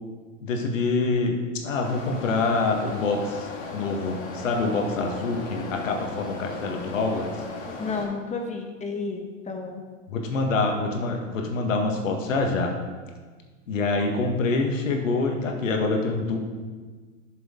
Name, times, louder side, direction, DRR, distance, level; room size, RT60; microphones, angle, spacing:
voice 1, 0.4-7.3 10.1-12.7 13.7-16.4, left 3 dB, 85° left, 2 dB, 1.7 m, -26 dB
sound 1, 1.8-8.0, left 3 dB, 55° left, 2.9 m, -36 dB
voice 2, 7.8-9.8, left 4 dB, 20° left, 3 dB, 1.4 m, -31 dB
11.5 x 6.7 x 3.8 m, 1.4 s
hypercardioid pair, 115°, 38 cm